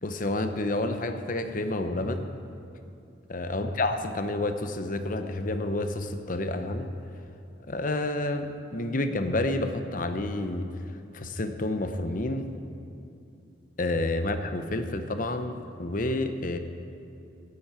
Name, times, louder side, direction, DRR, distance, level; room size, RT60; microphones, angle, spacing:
voice 1, 0.0-2.3 3.3-6.9 7.7-10.7 11.1-12.5 13.8-16.6, left 2 dB, 45° left, 8 dB, 0.8 m, -29 dB
12.5 x 7.7 x 8.9 m, 2.7 s
head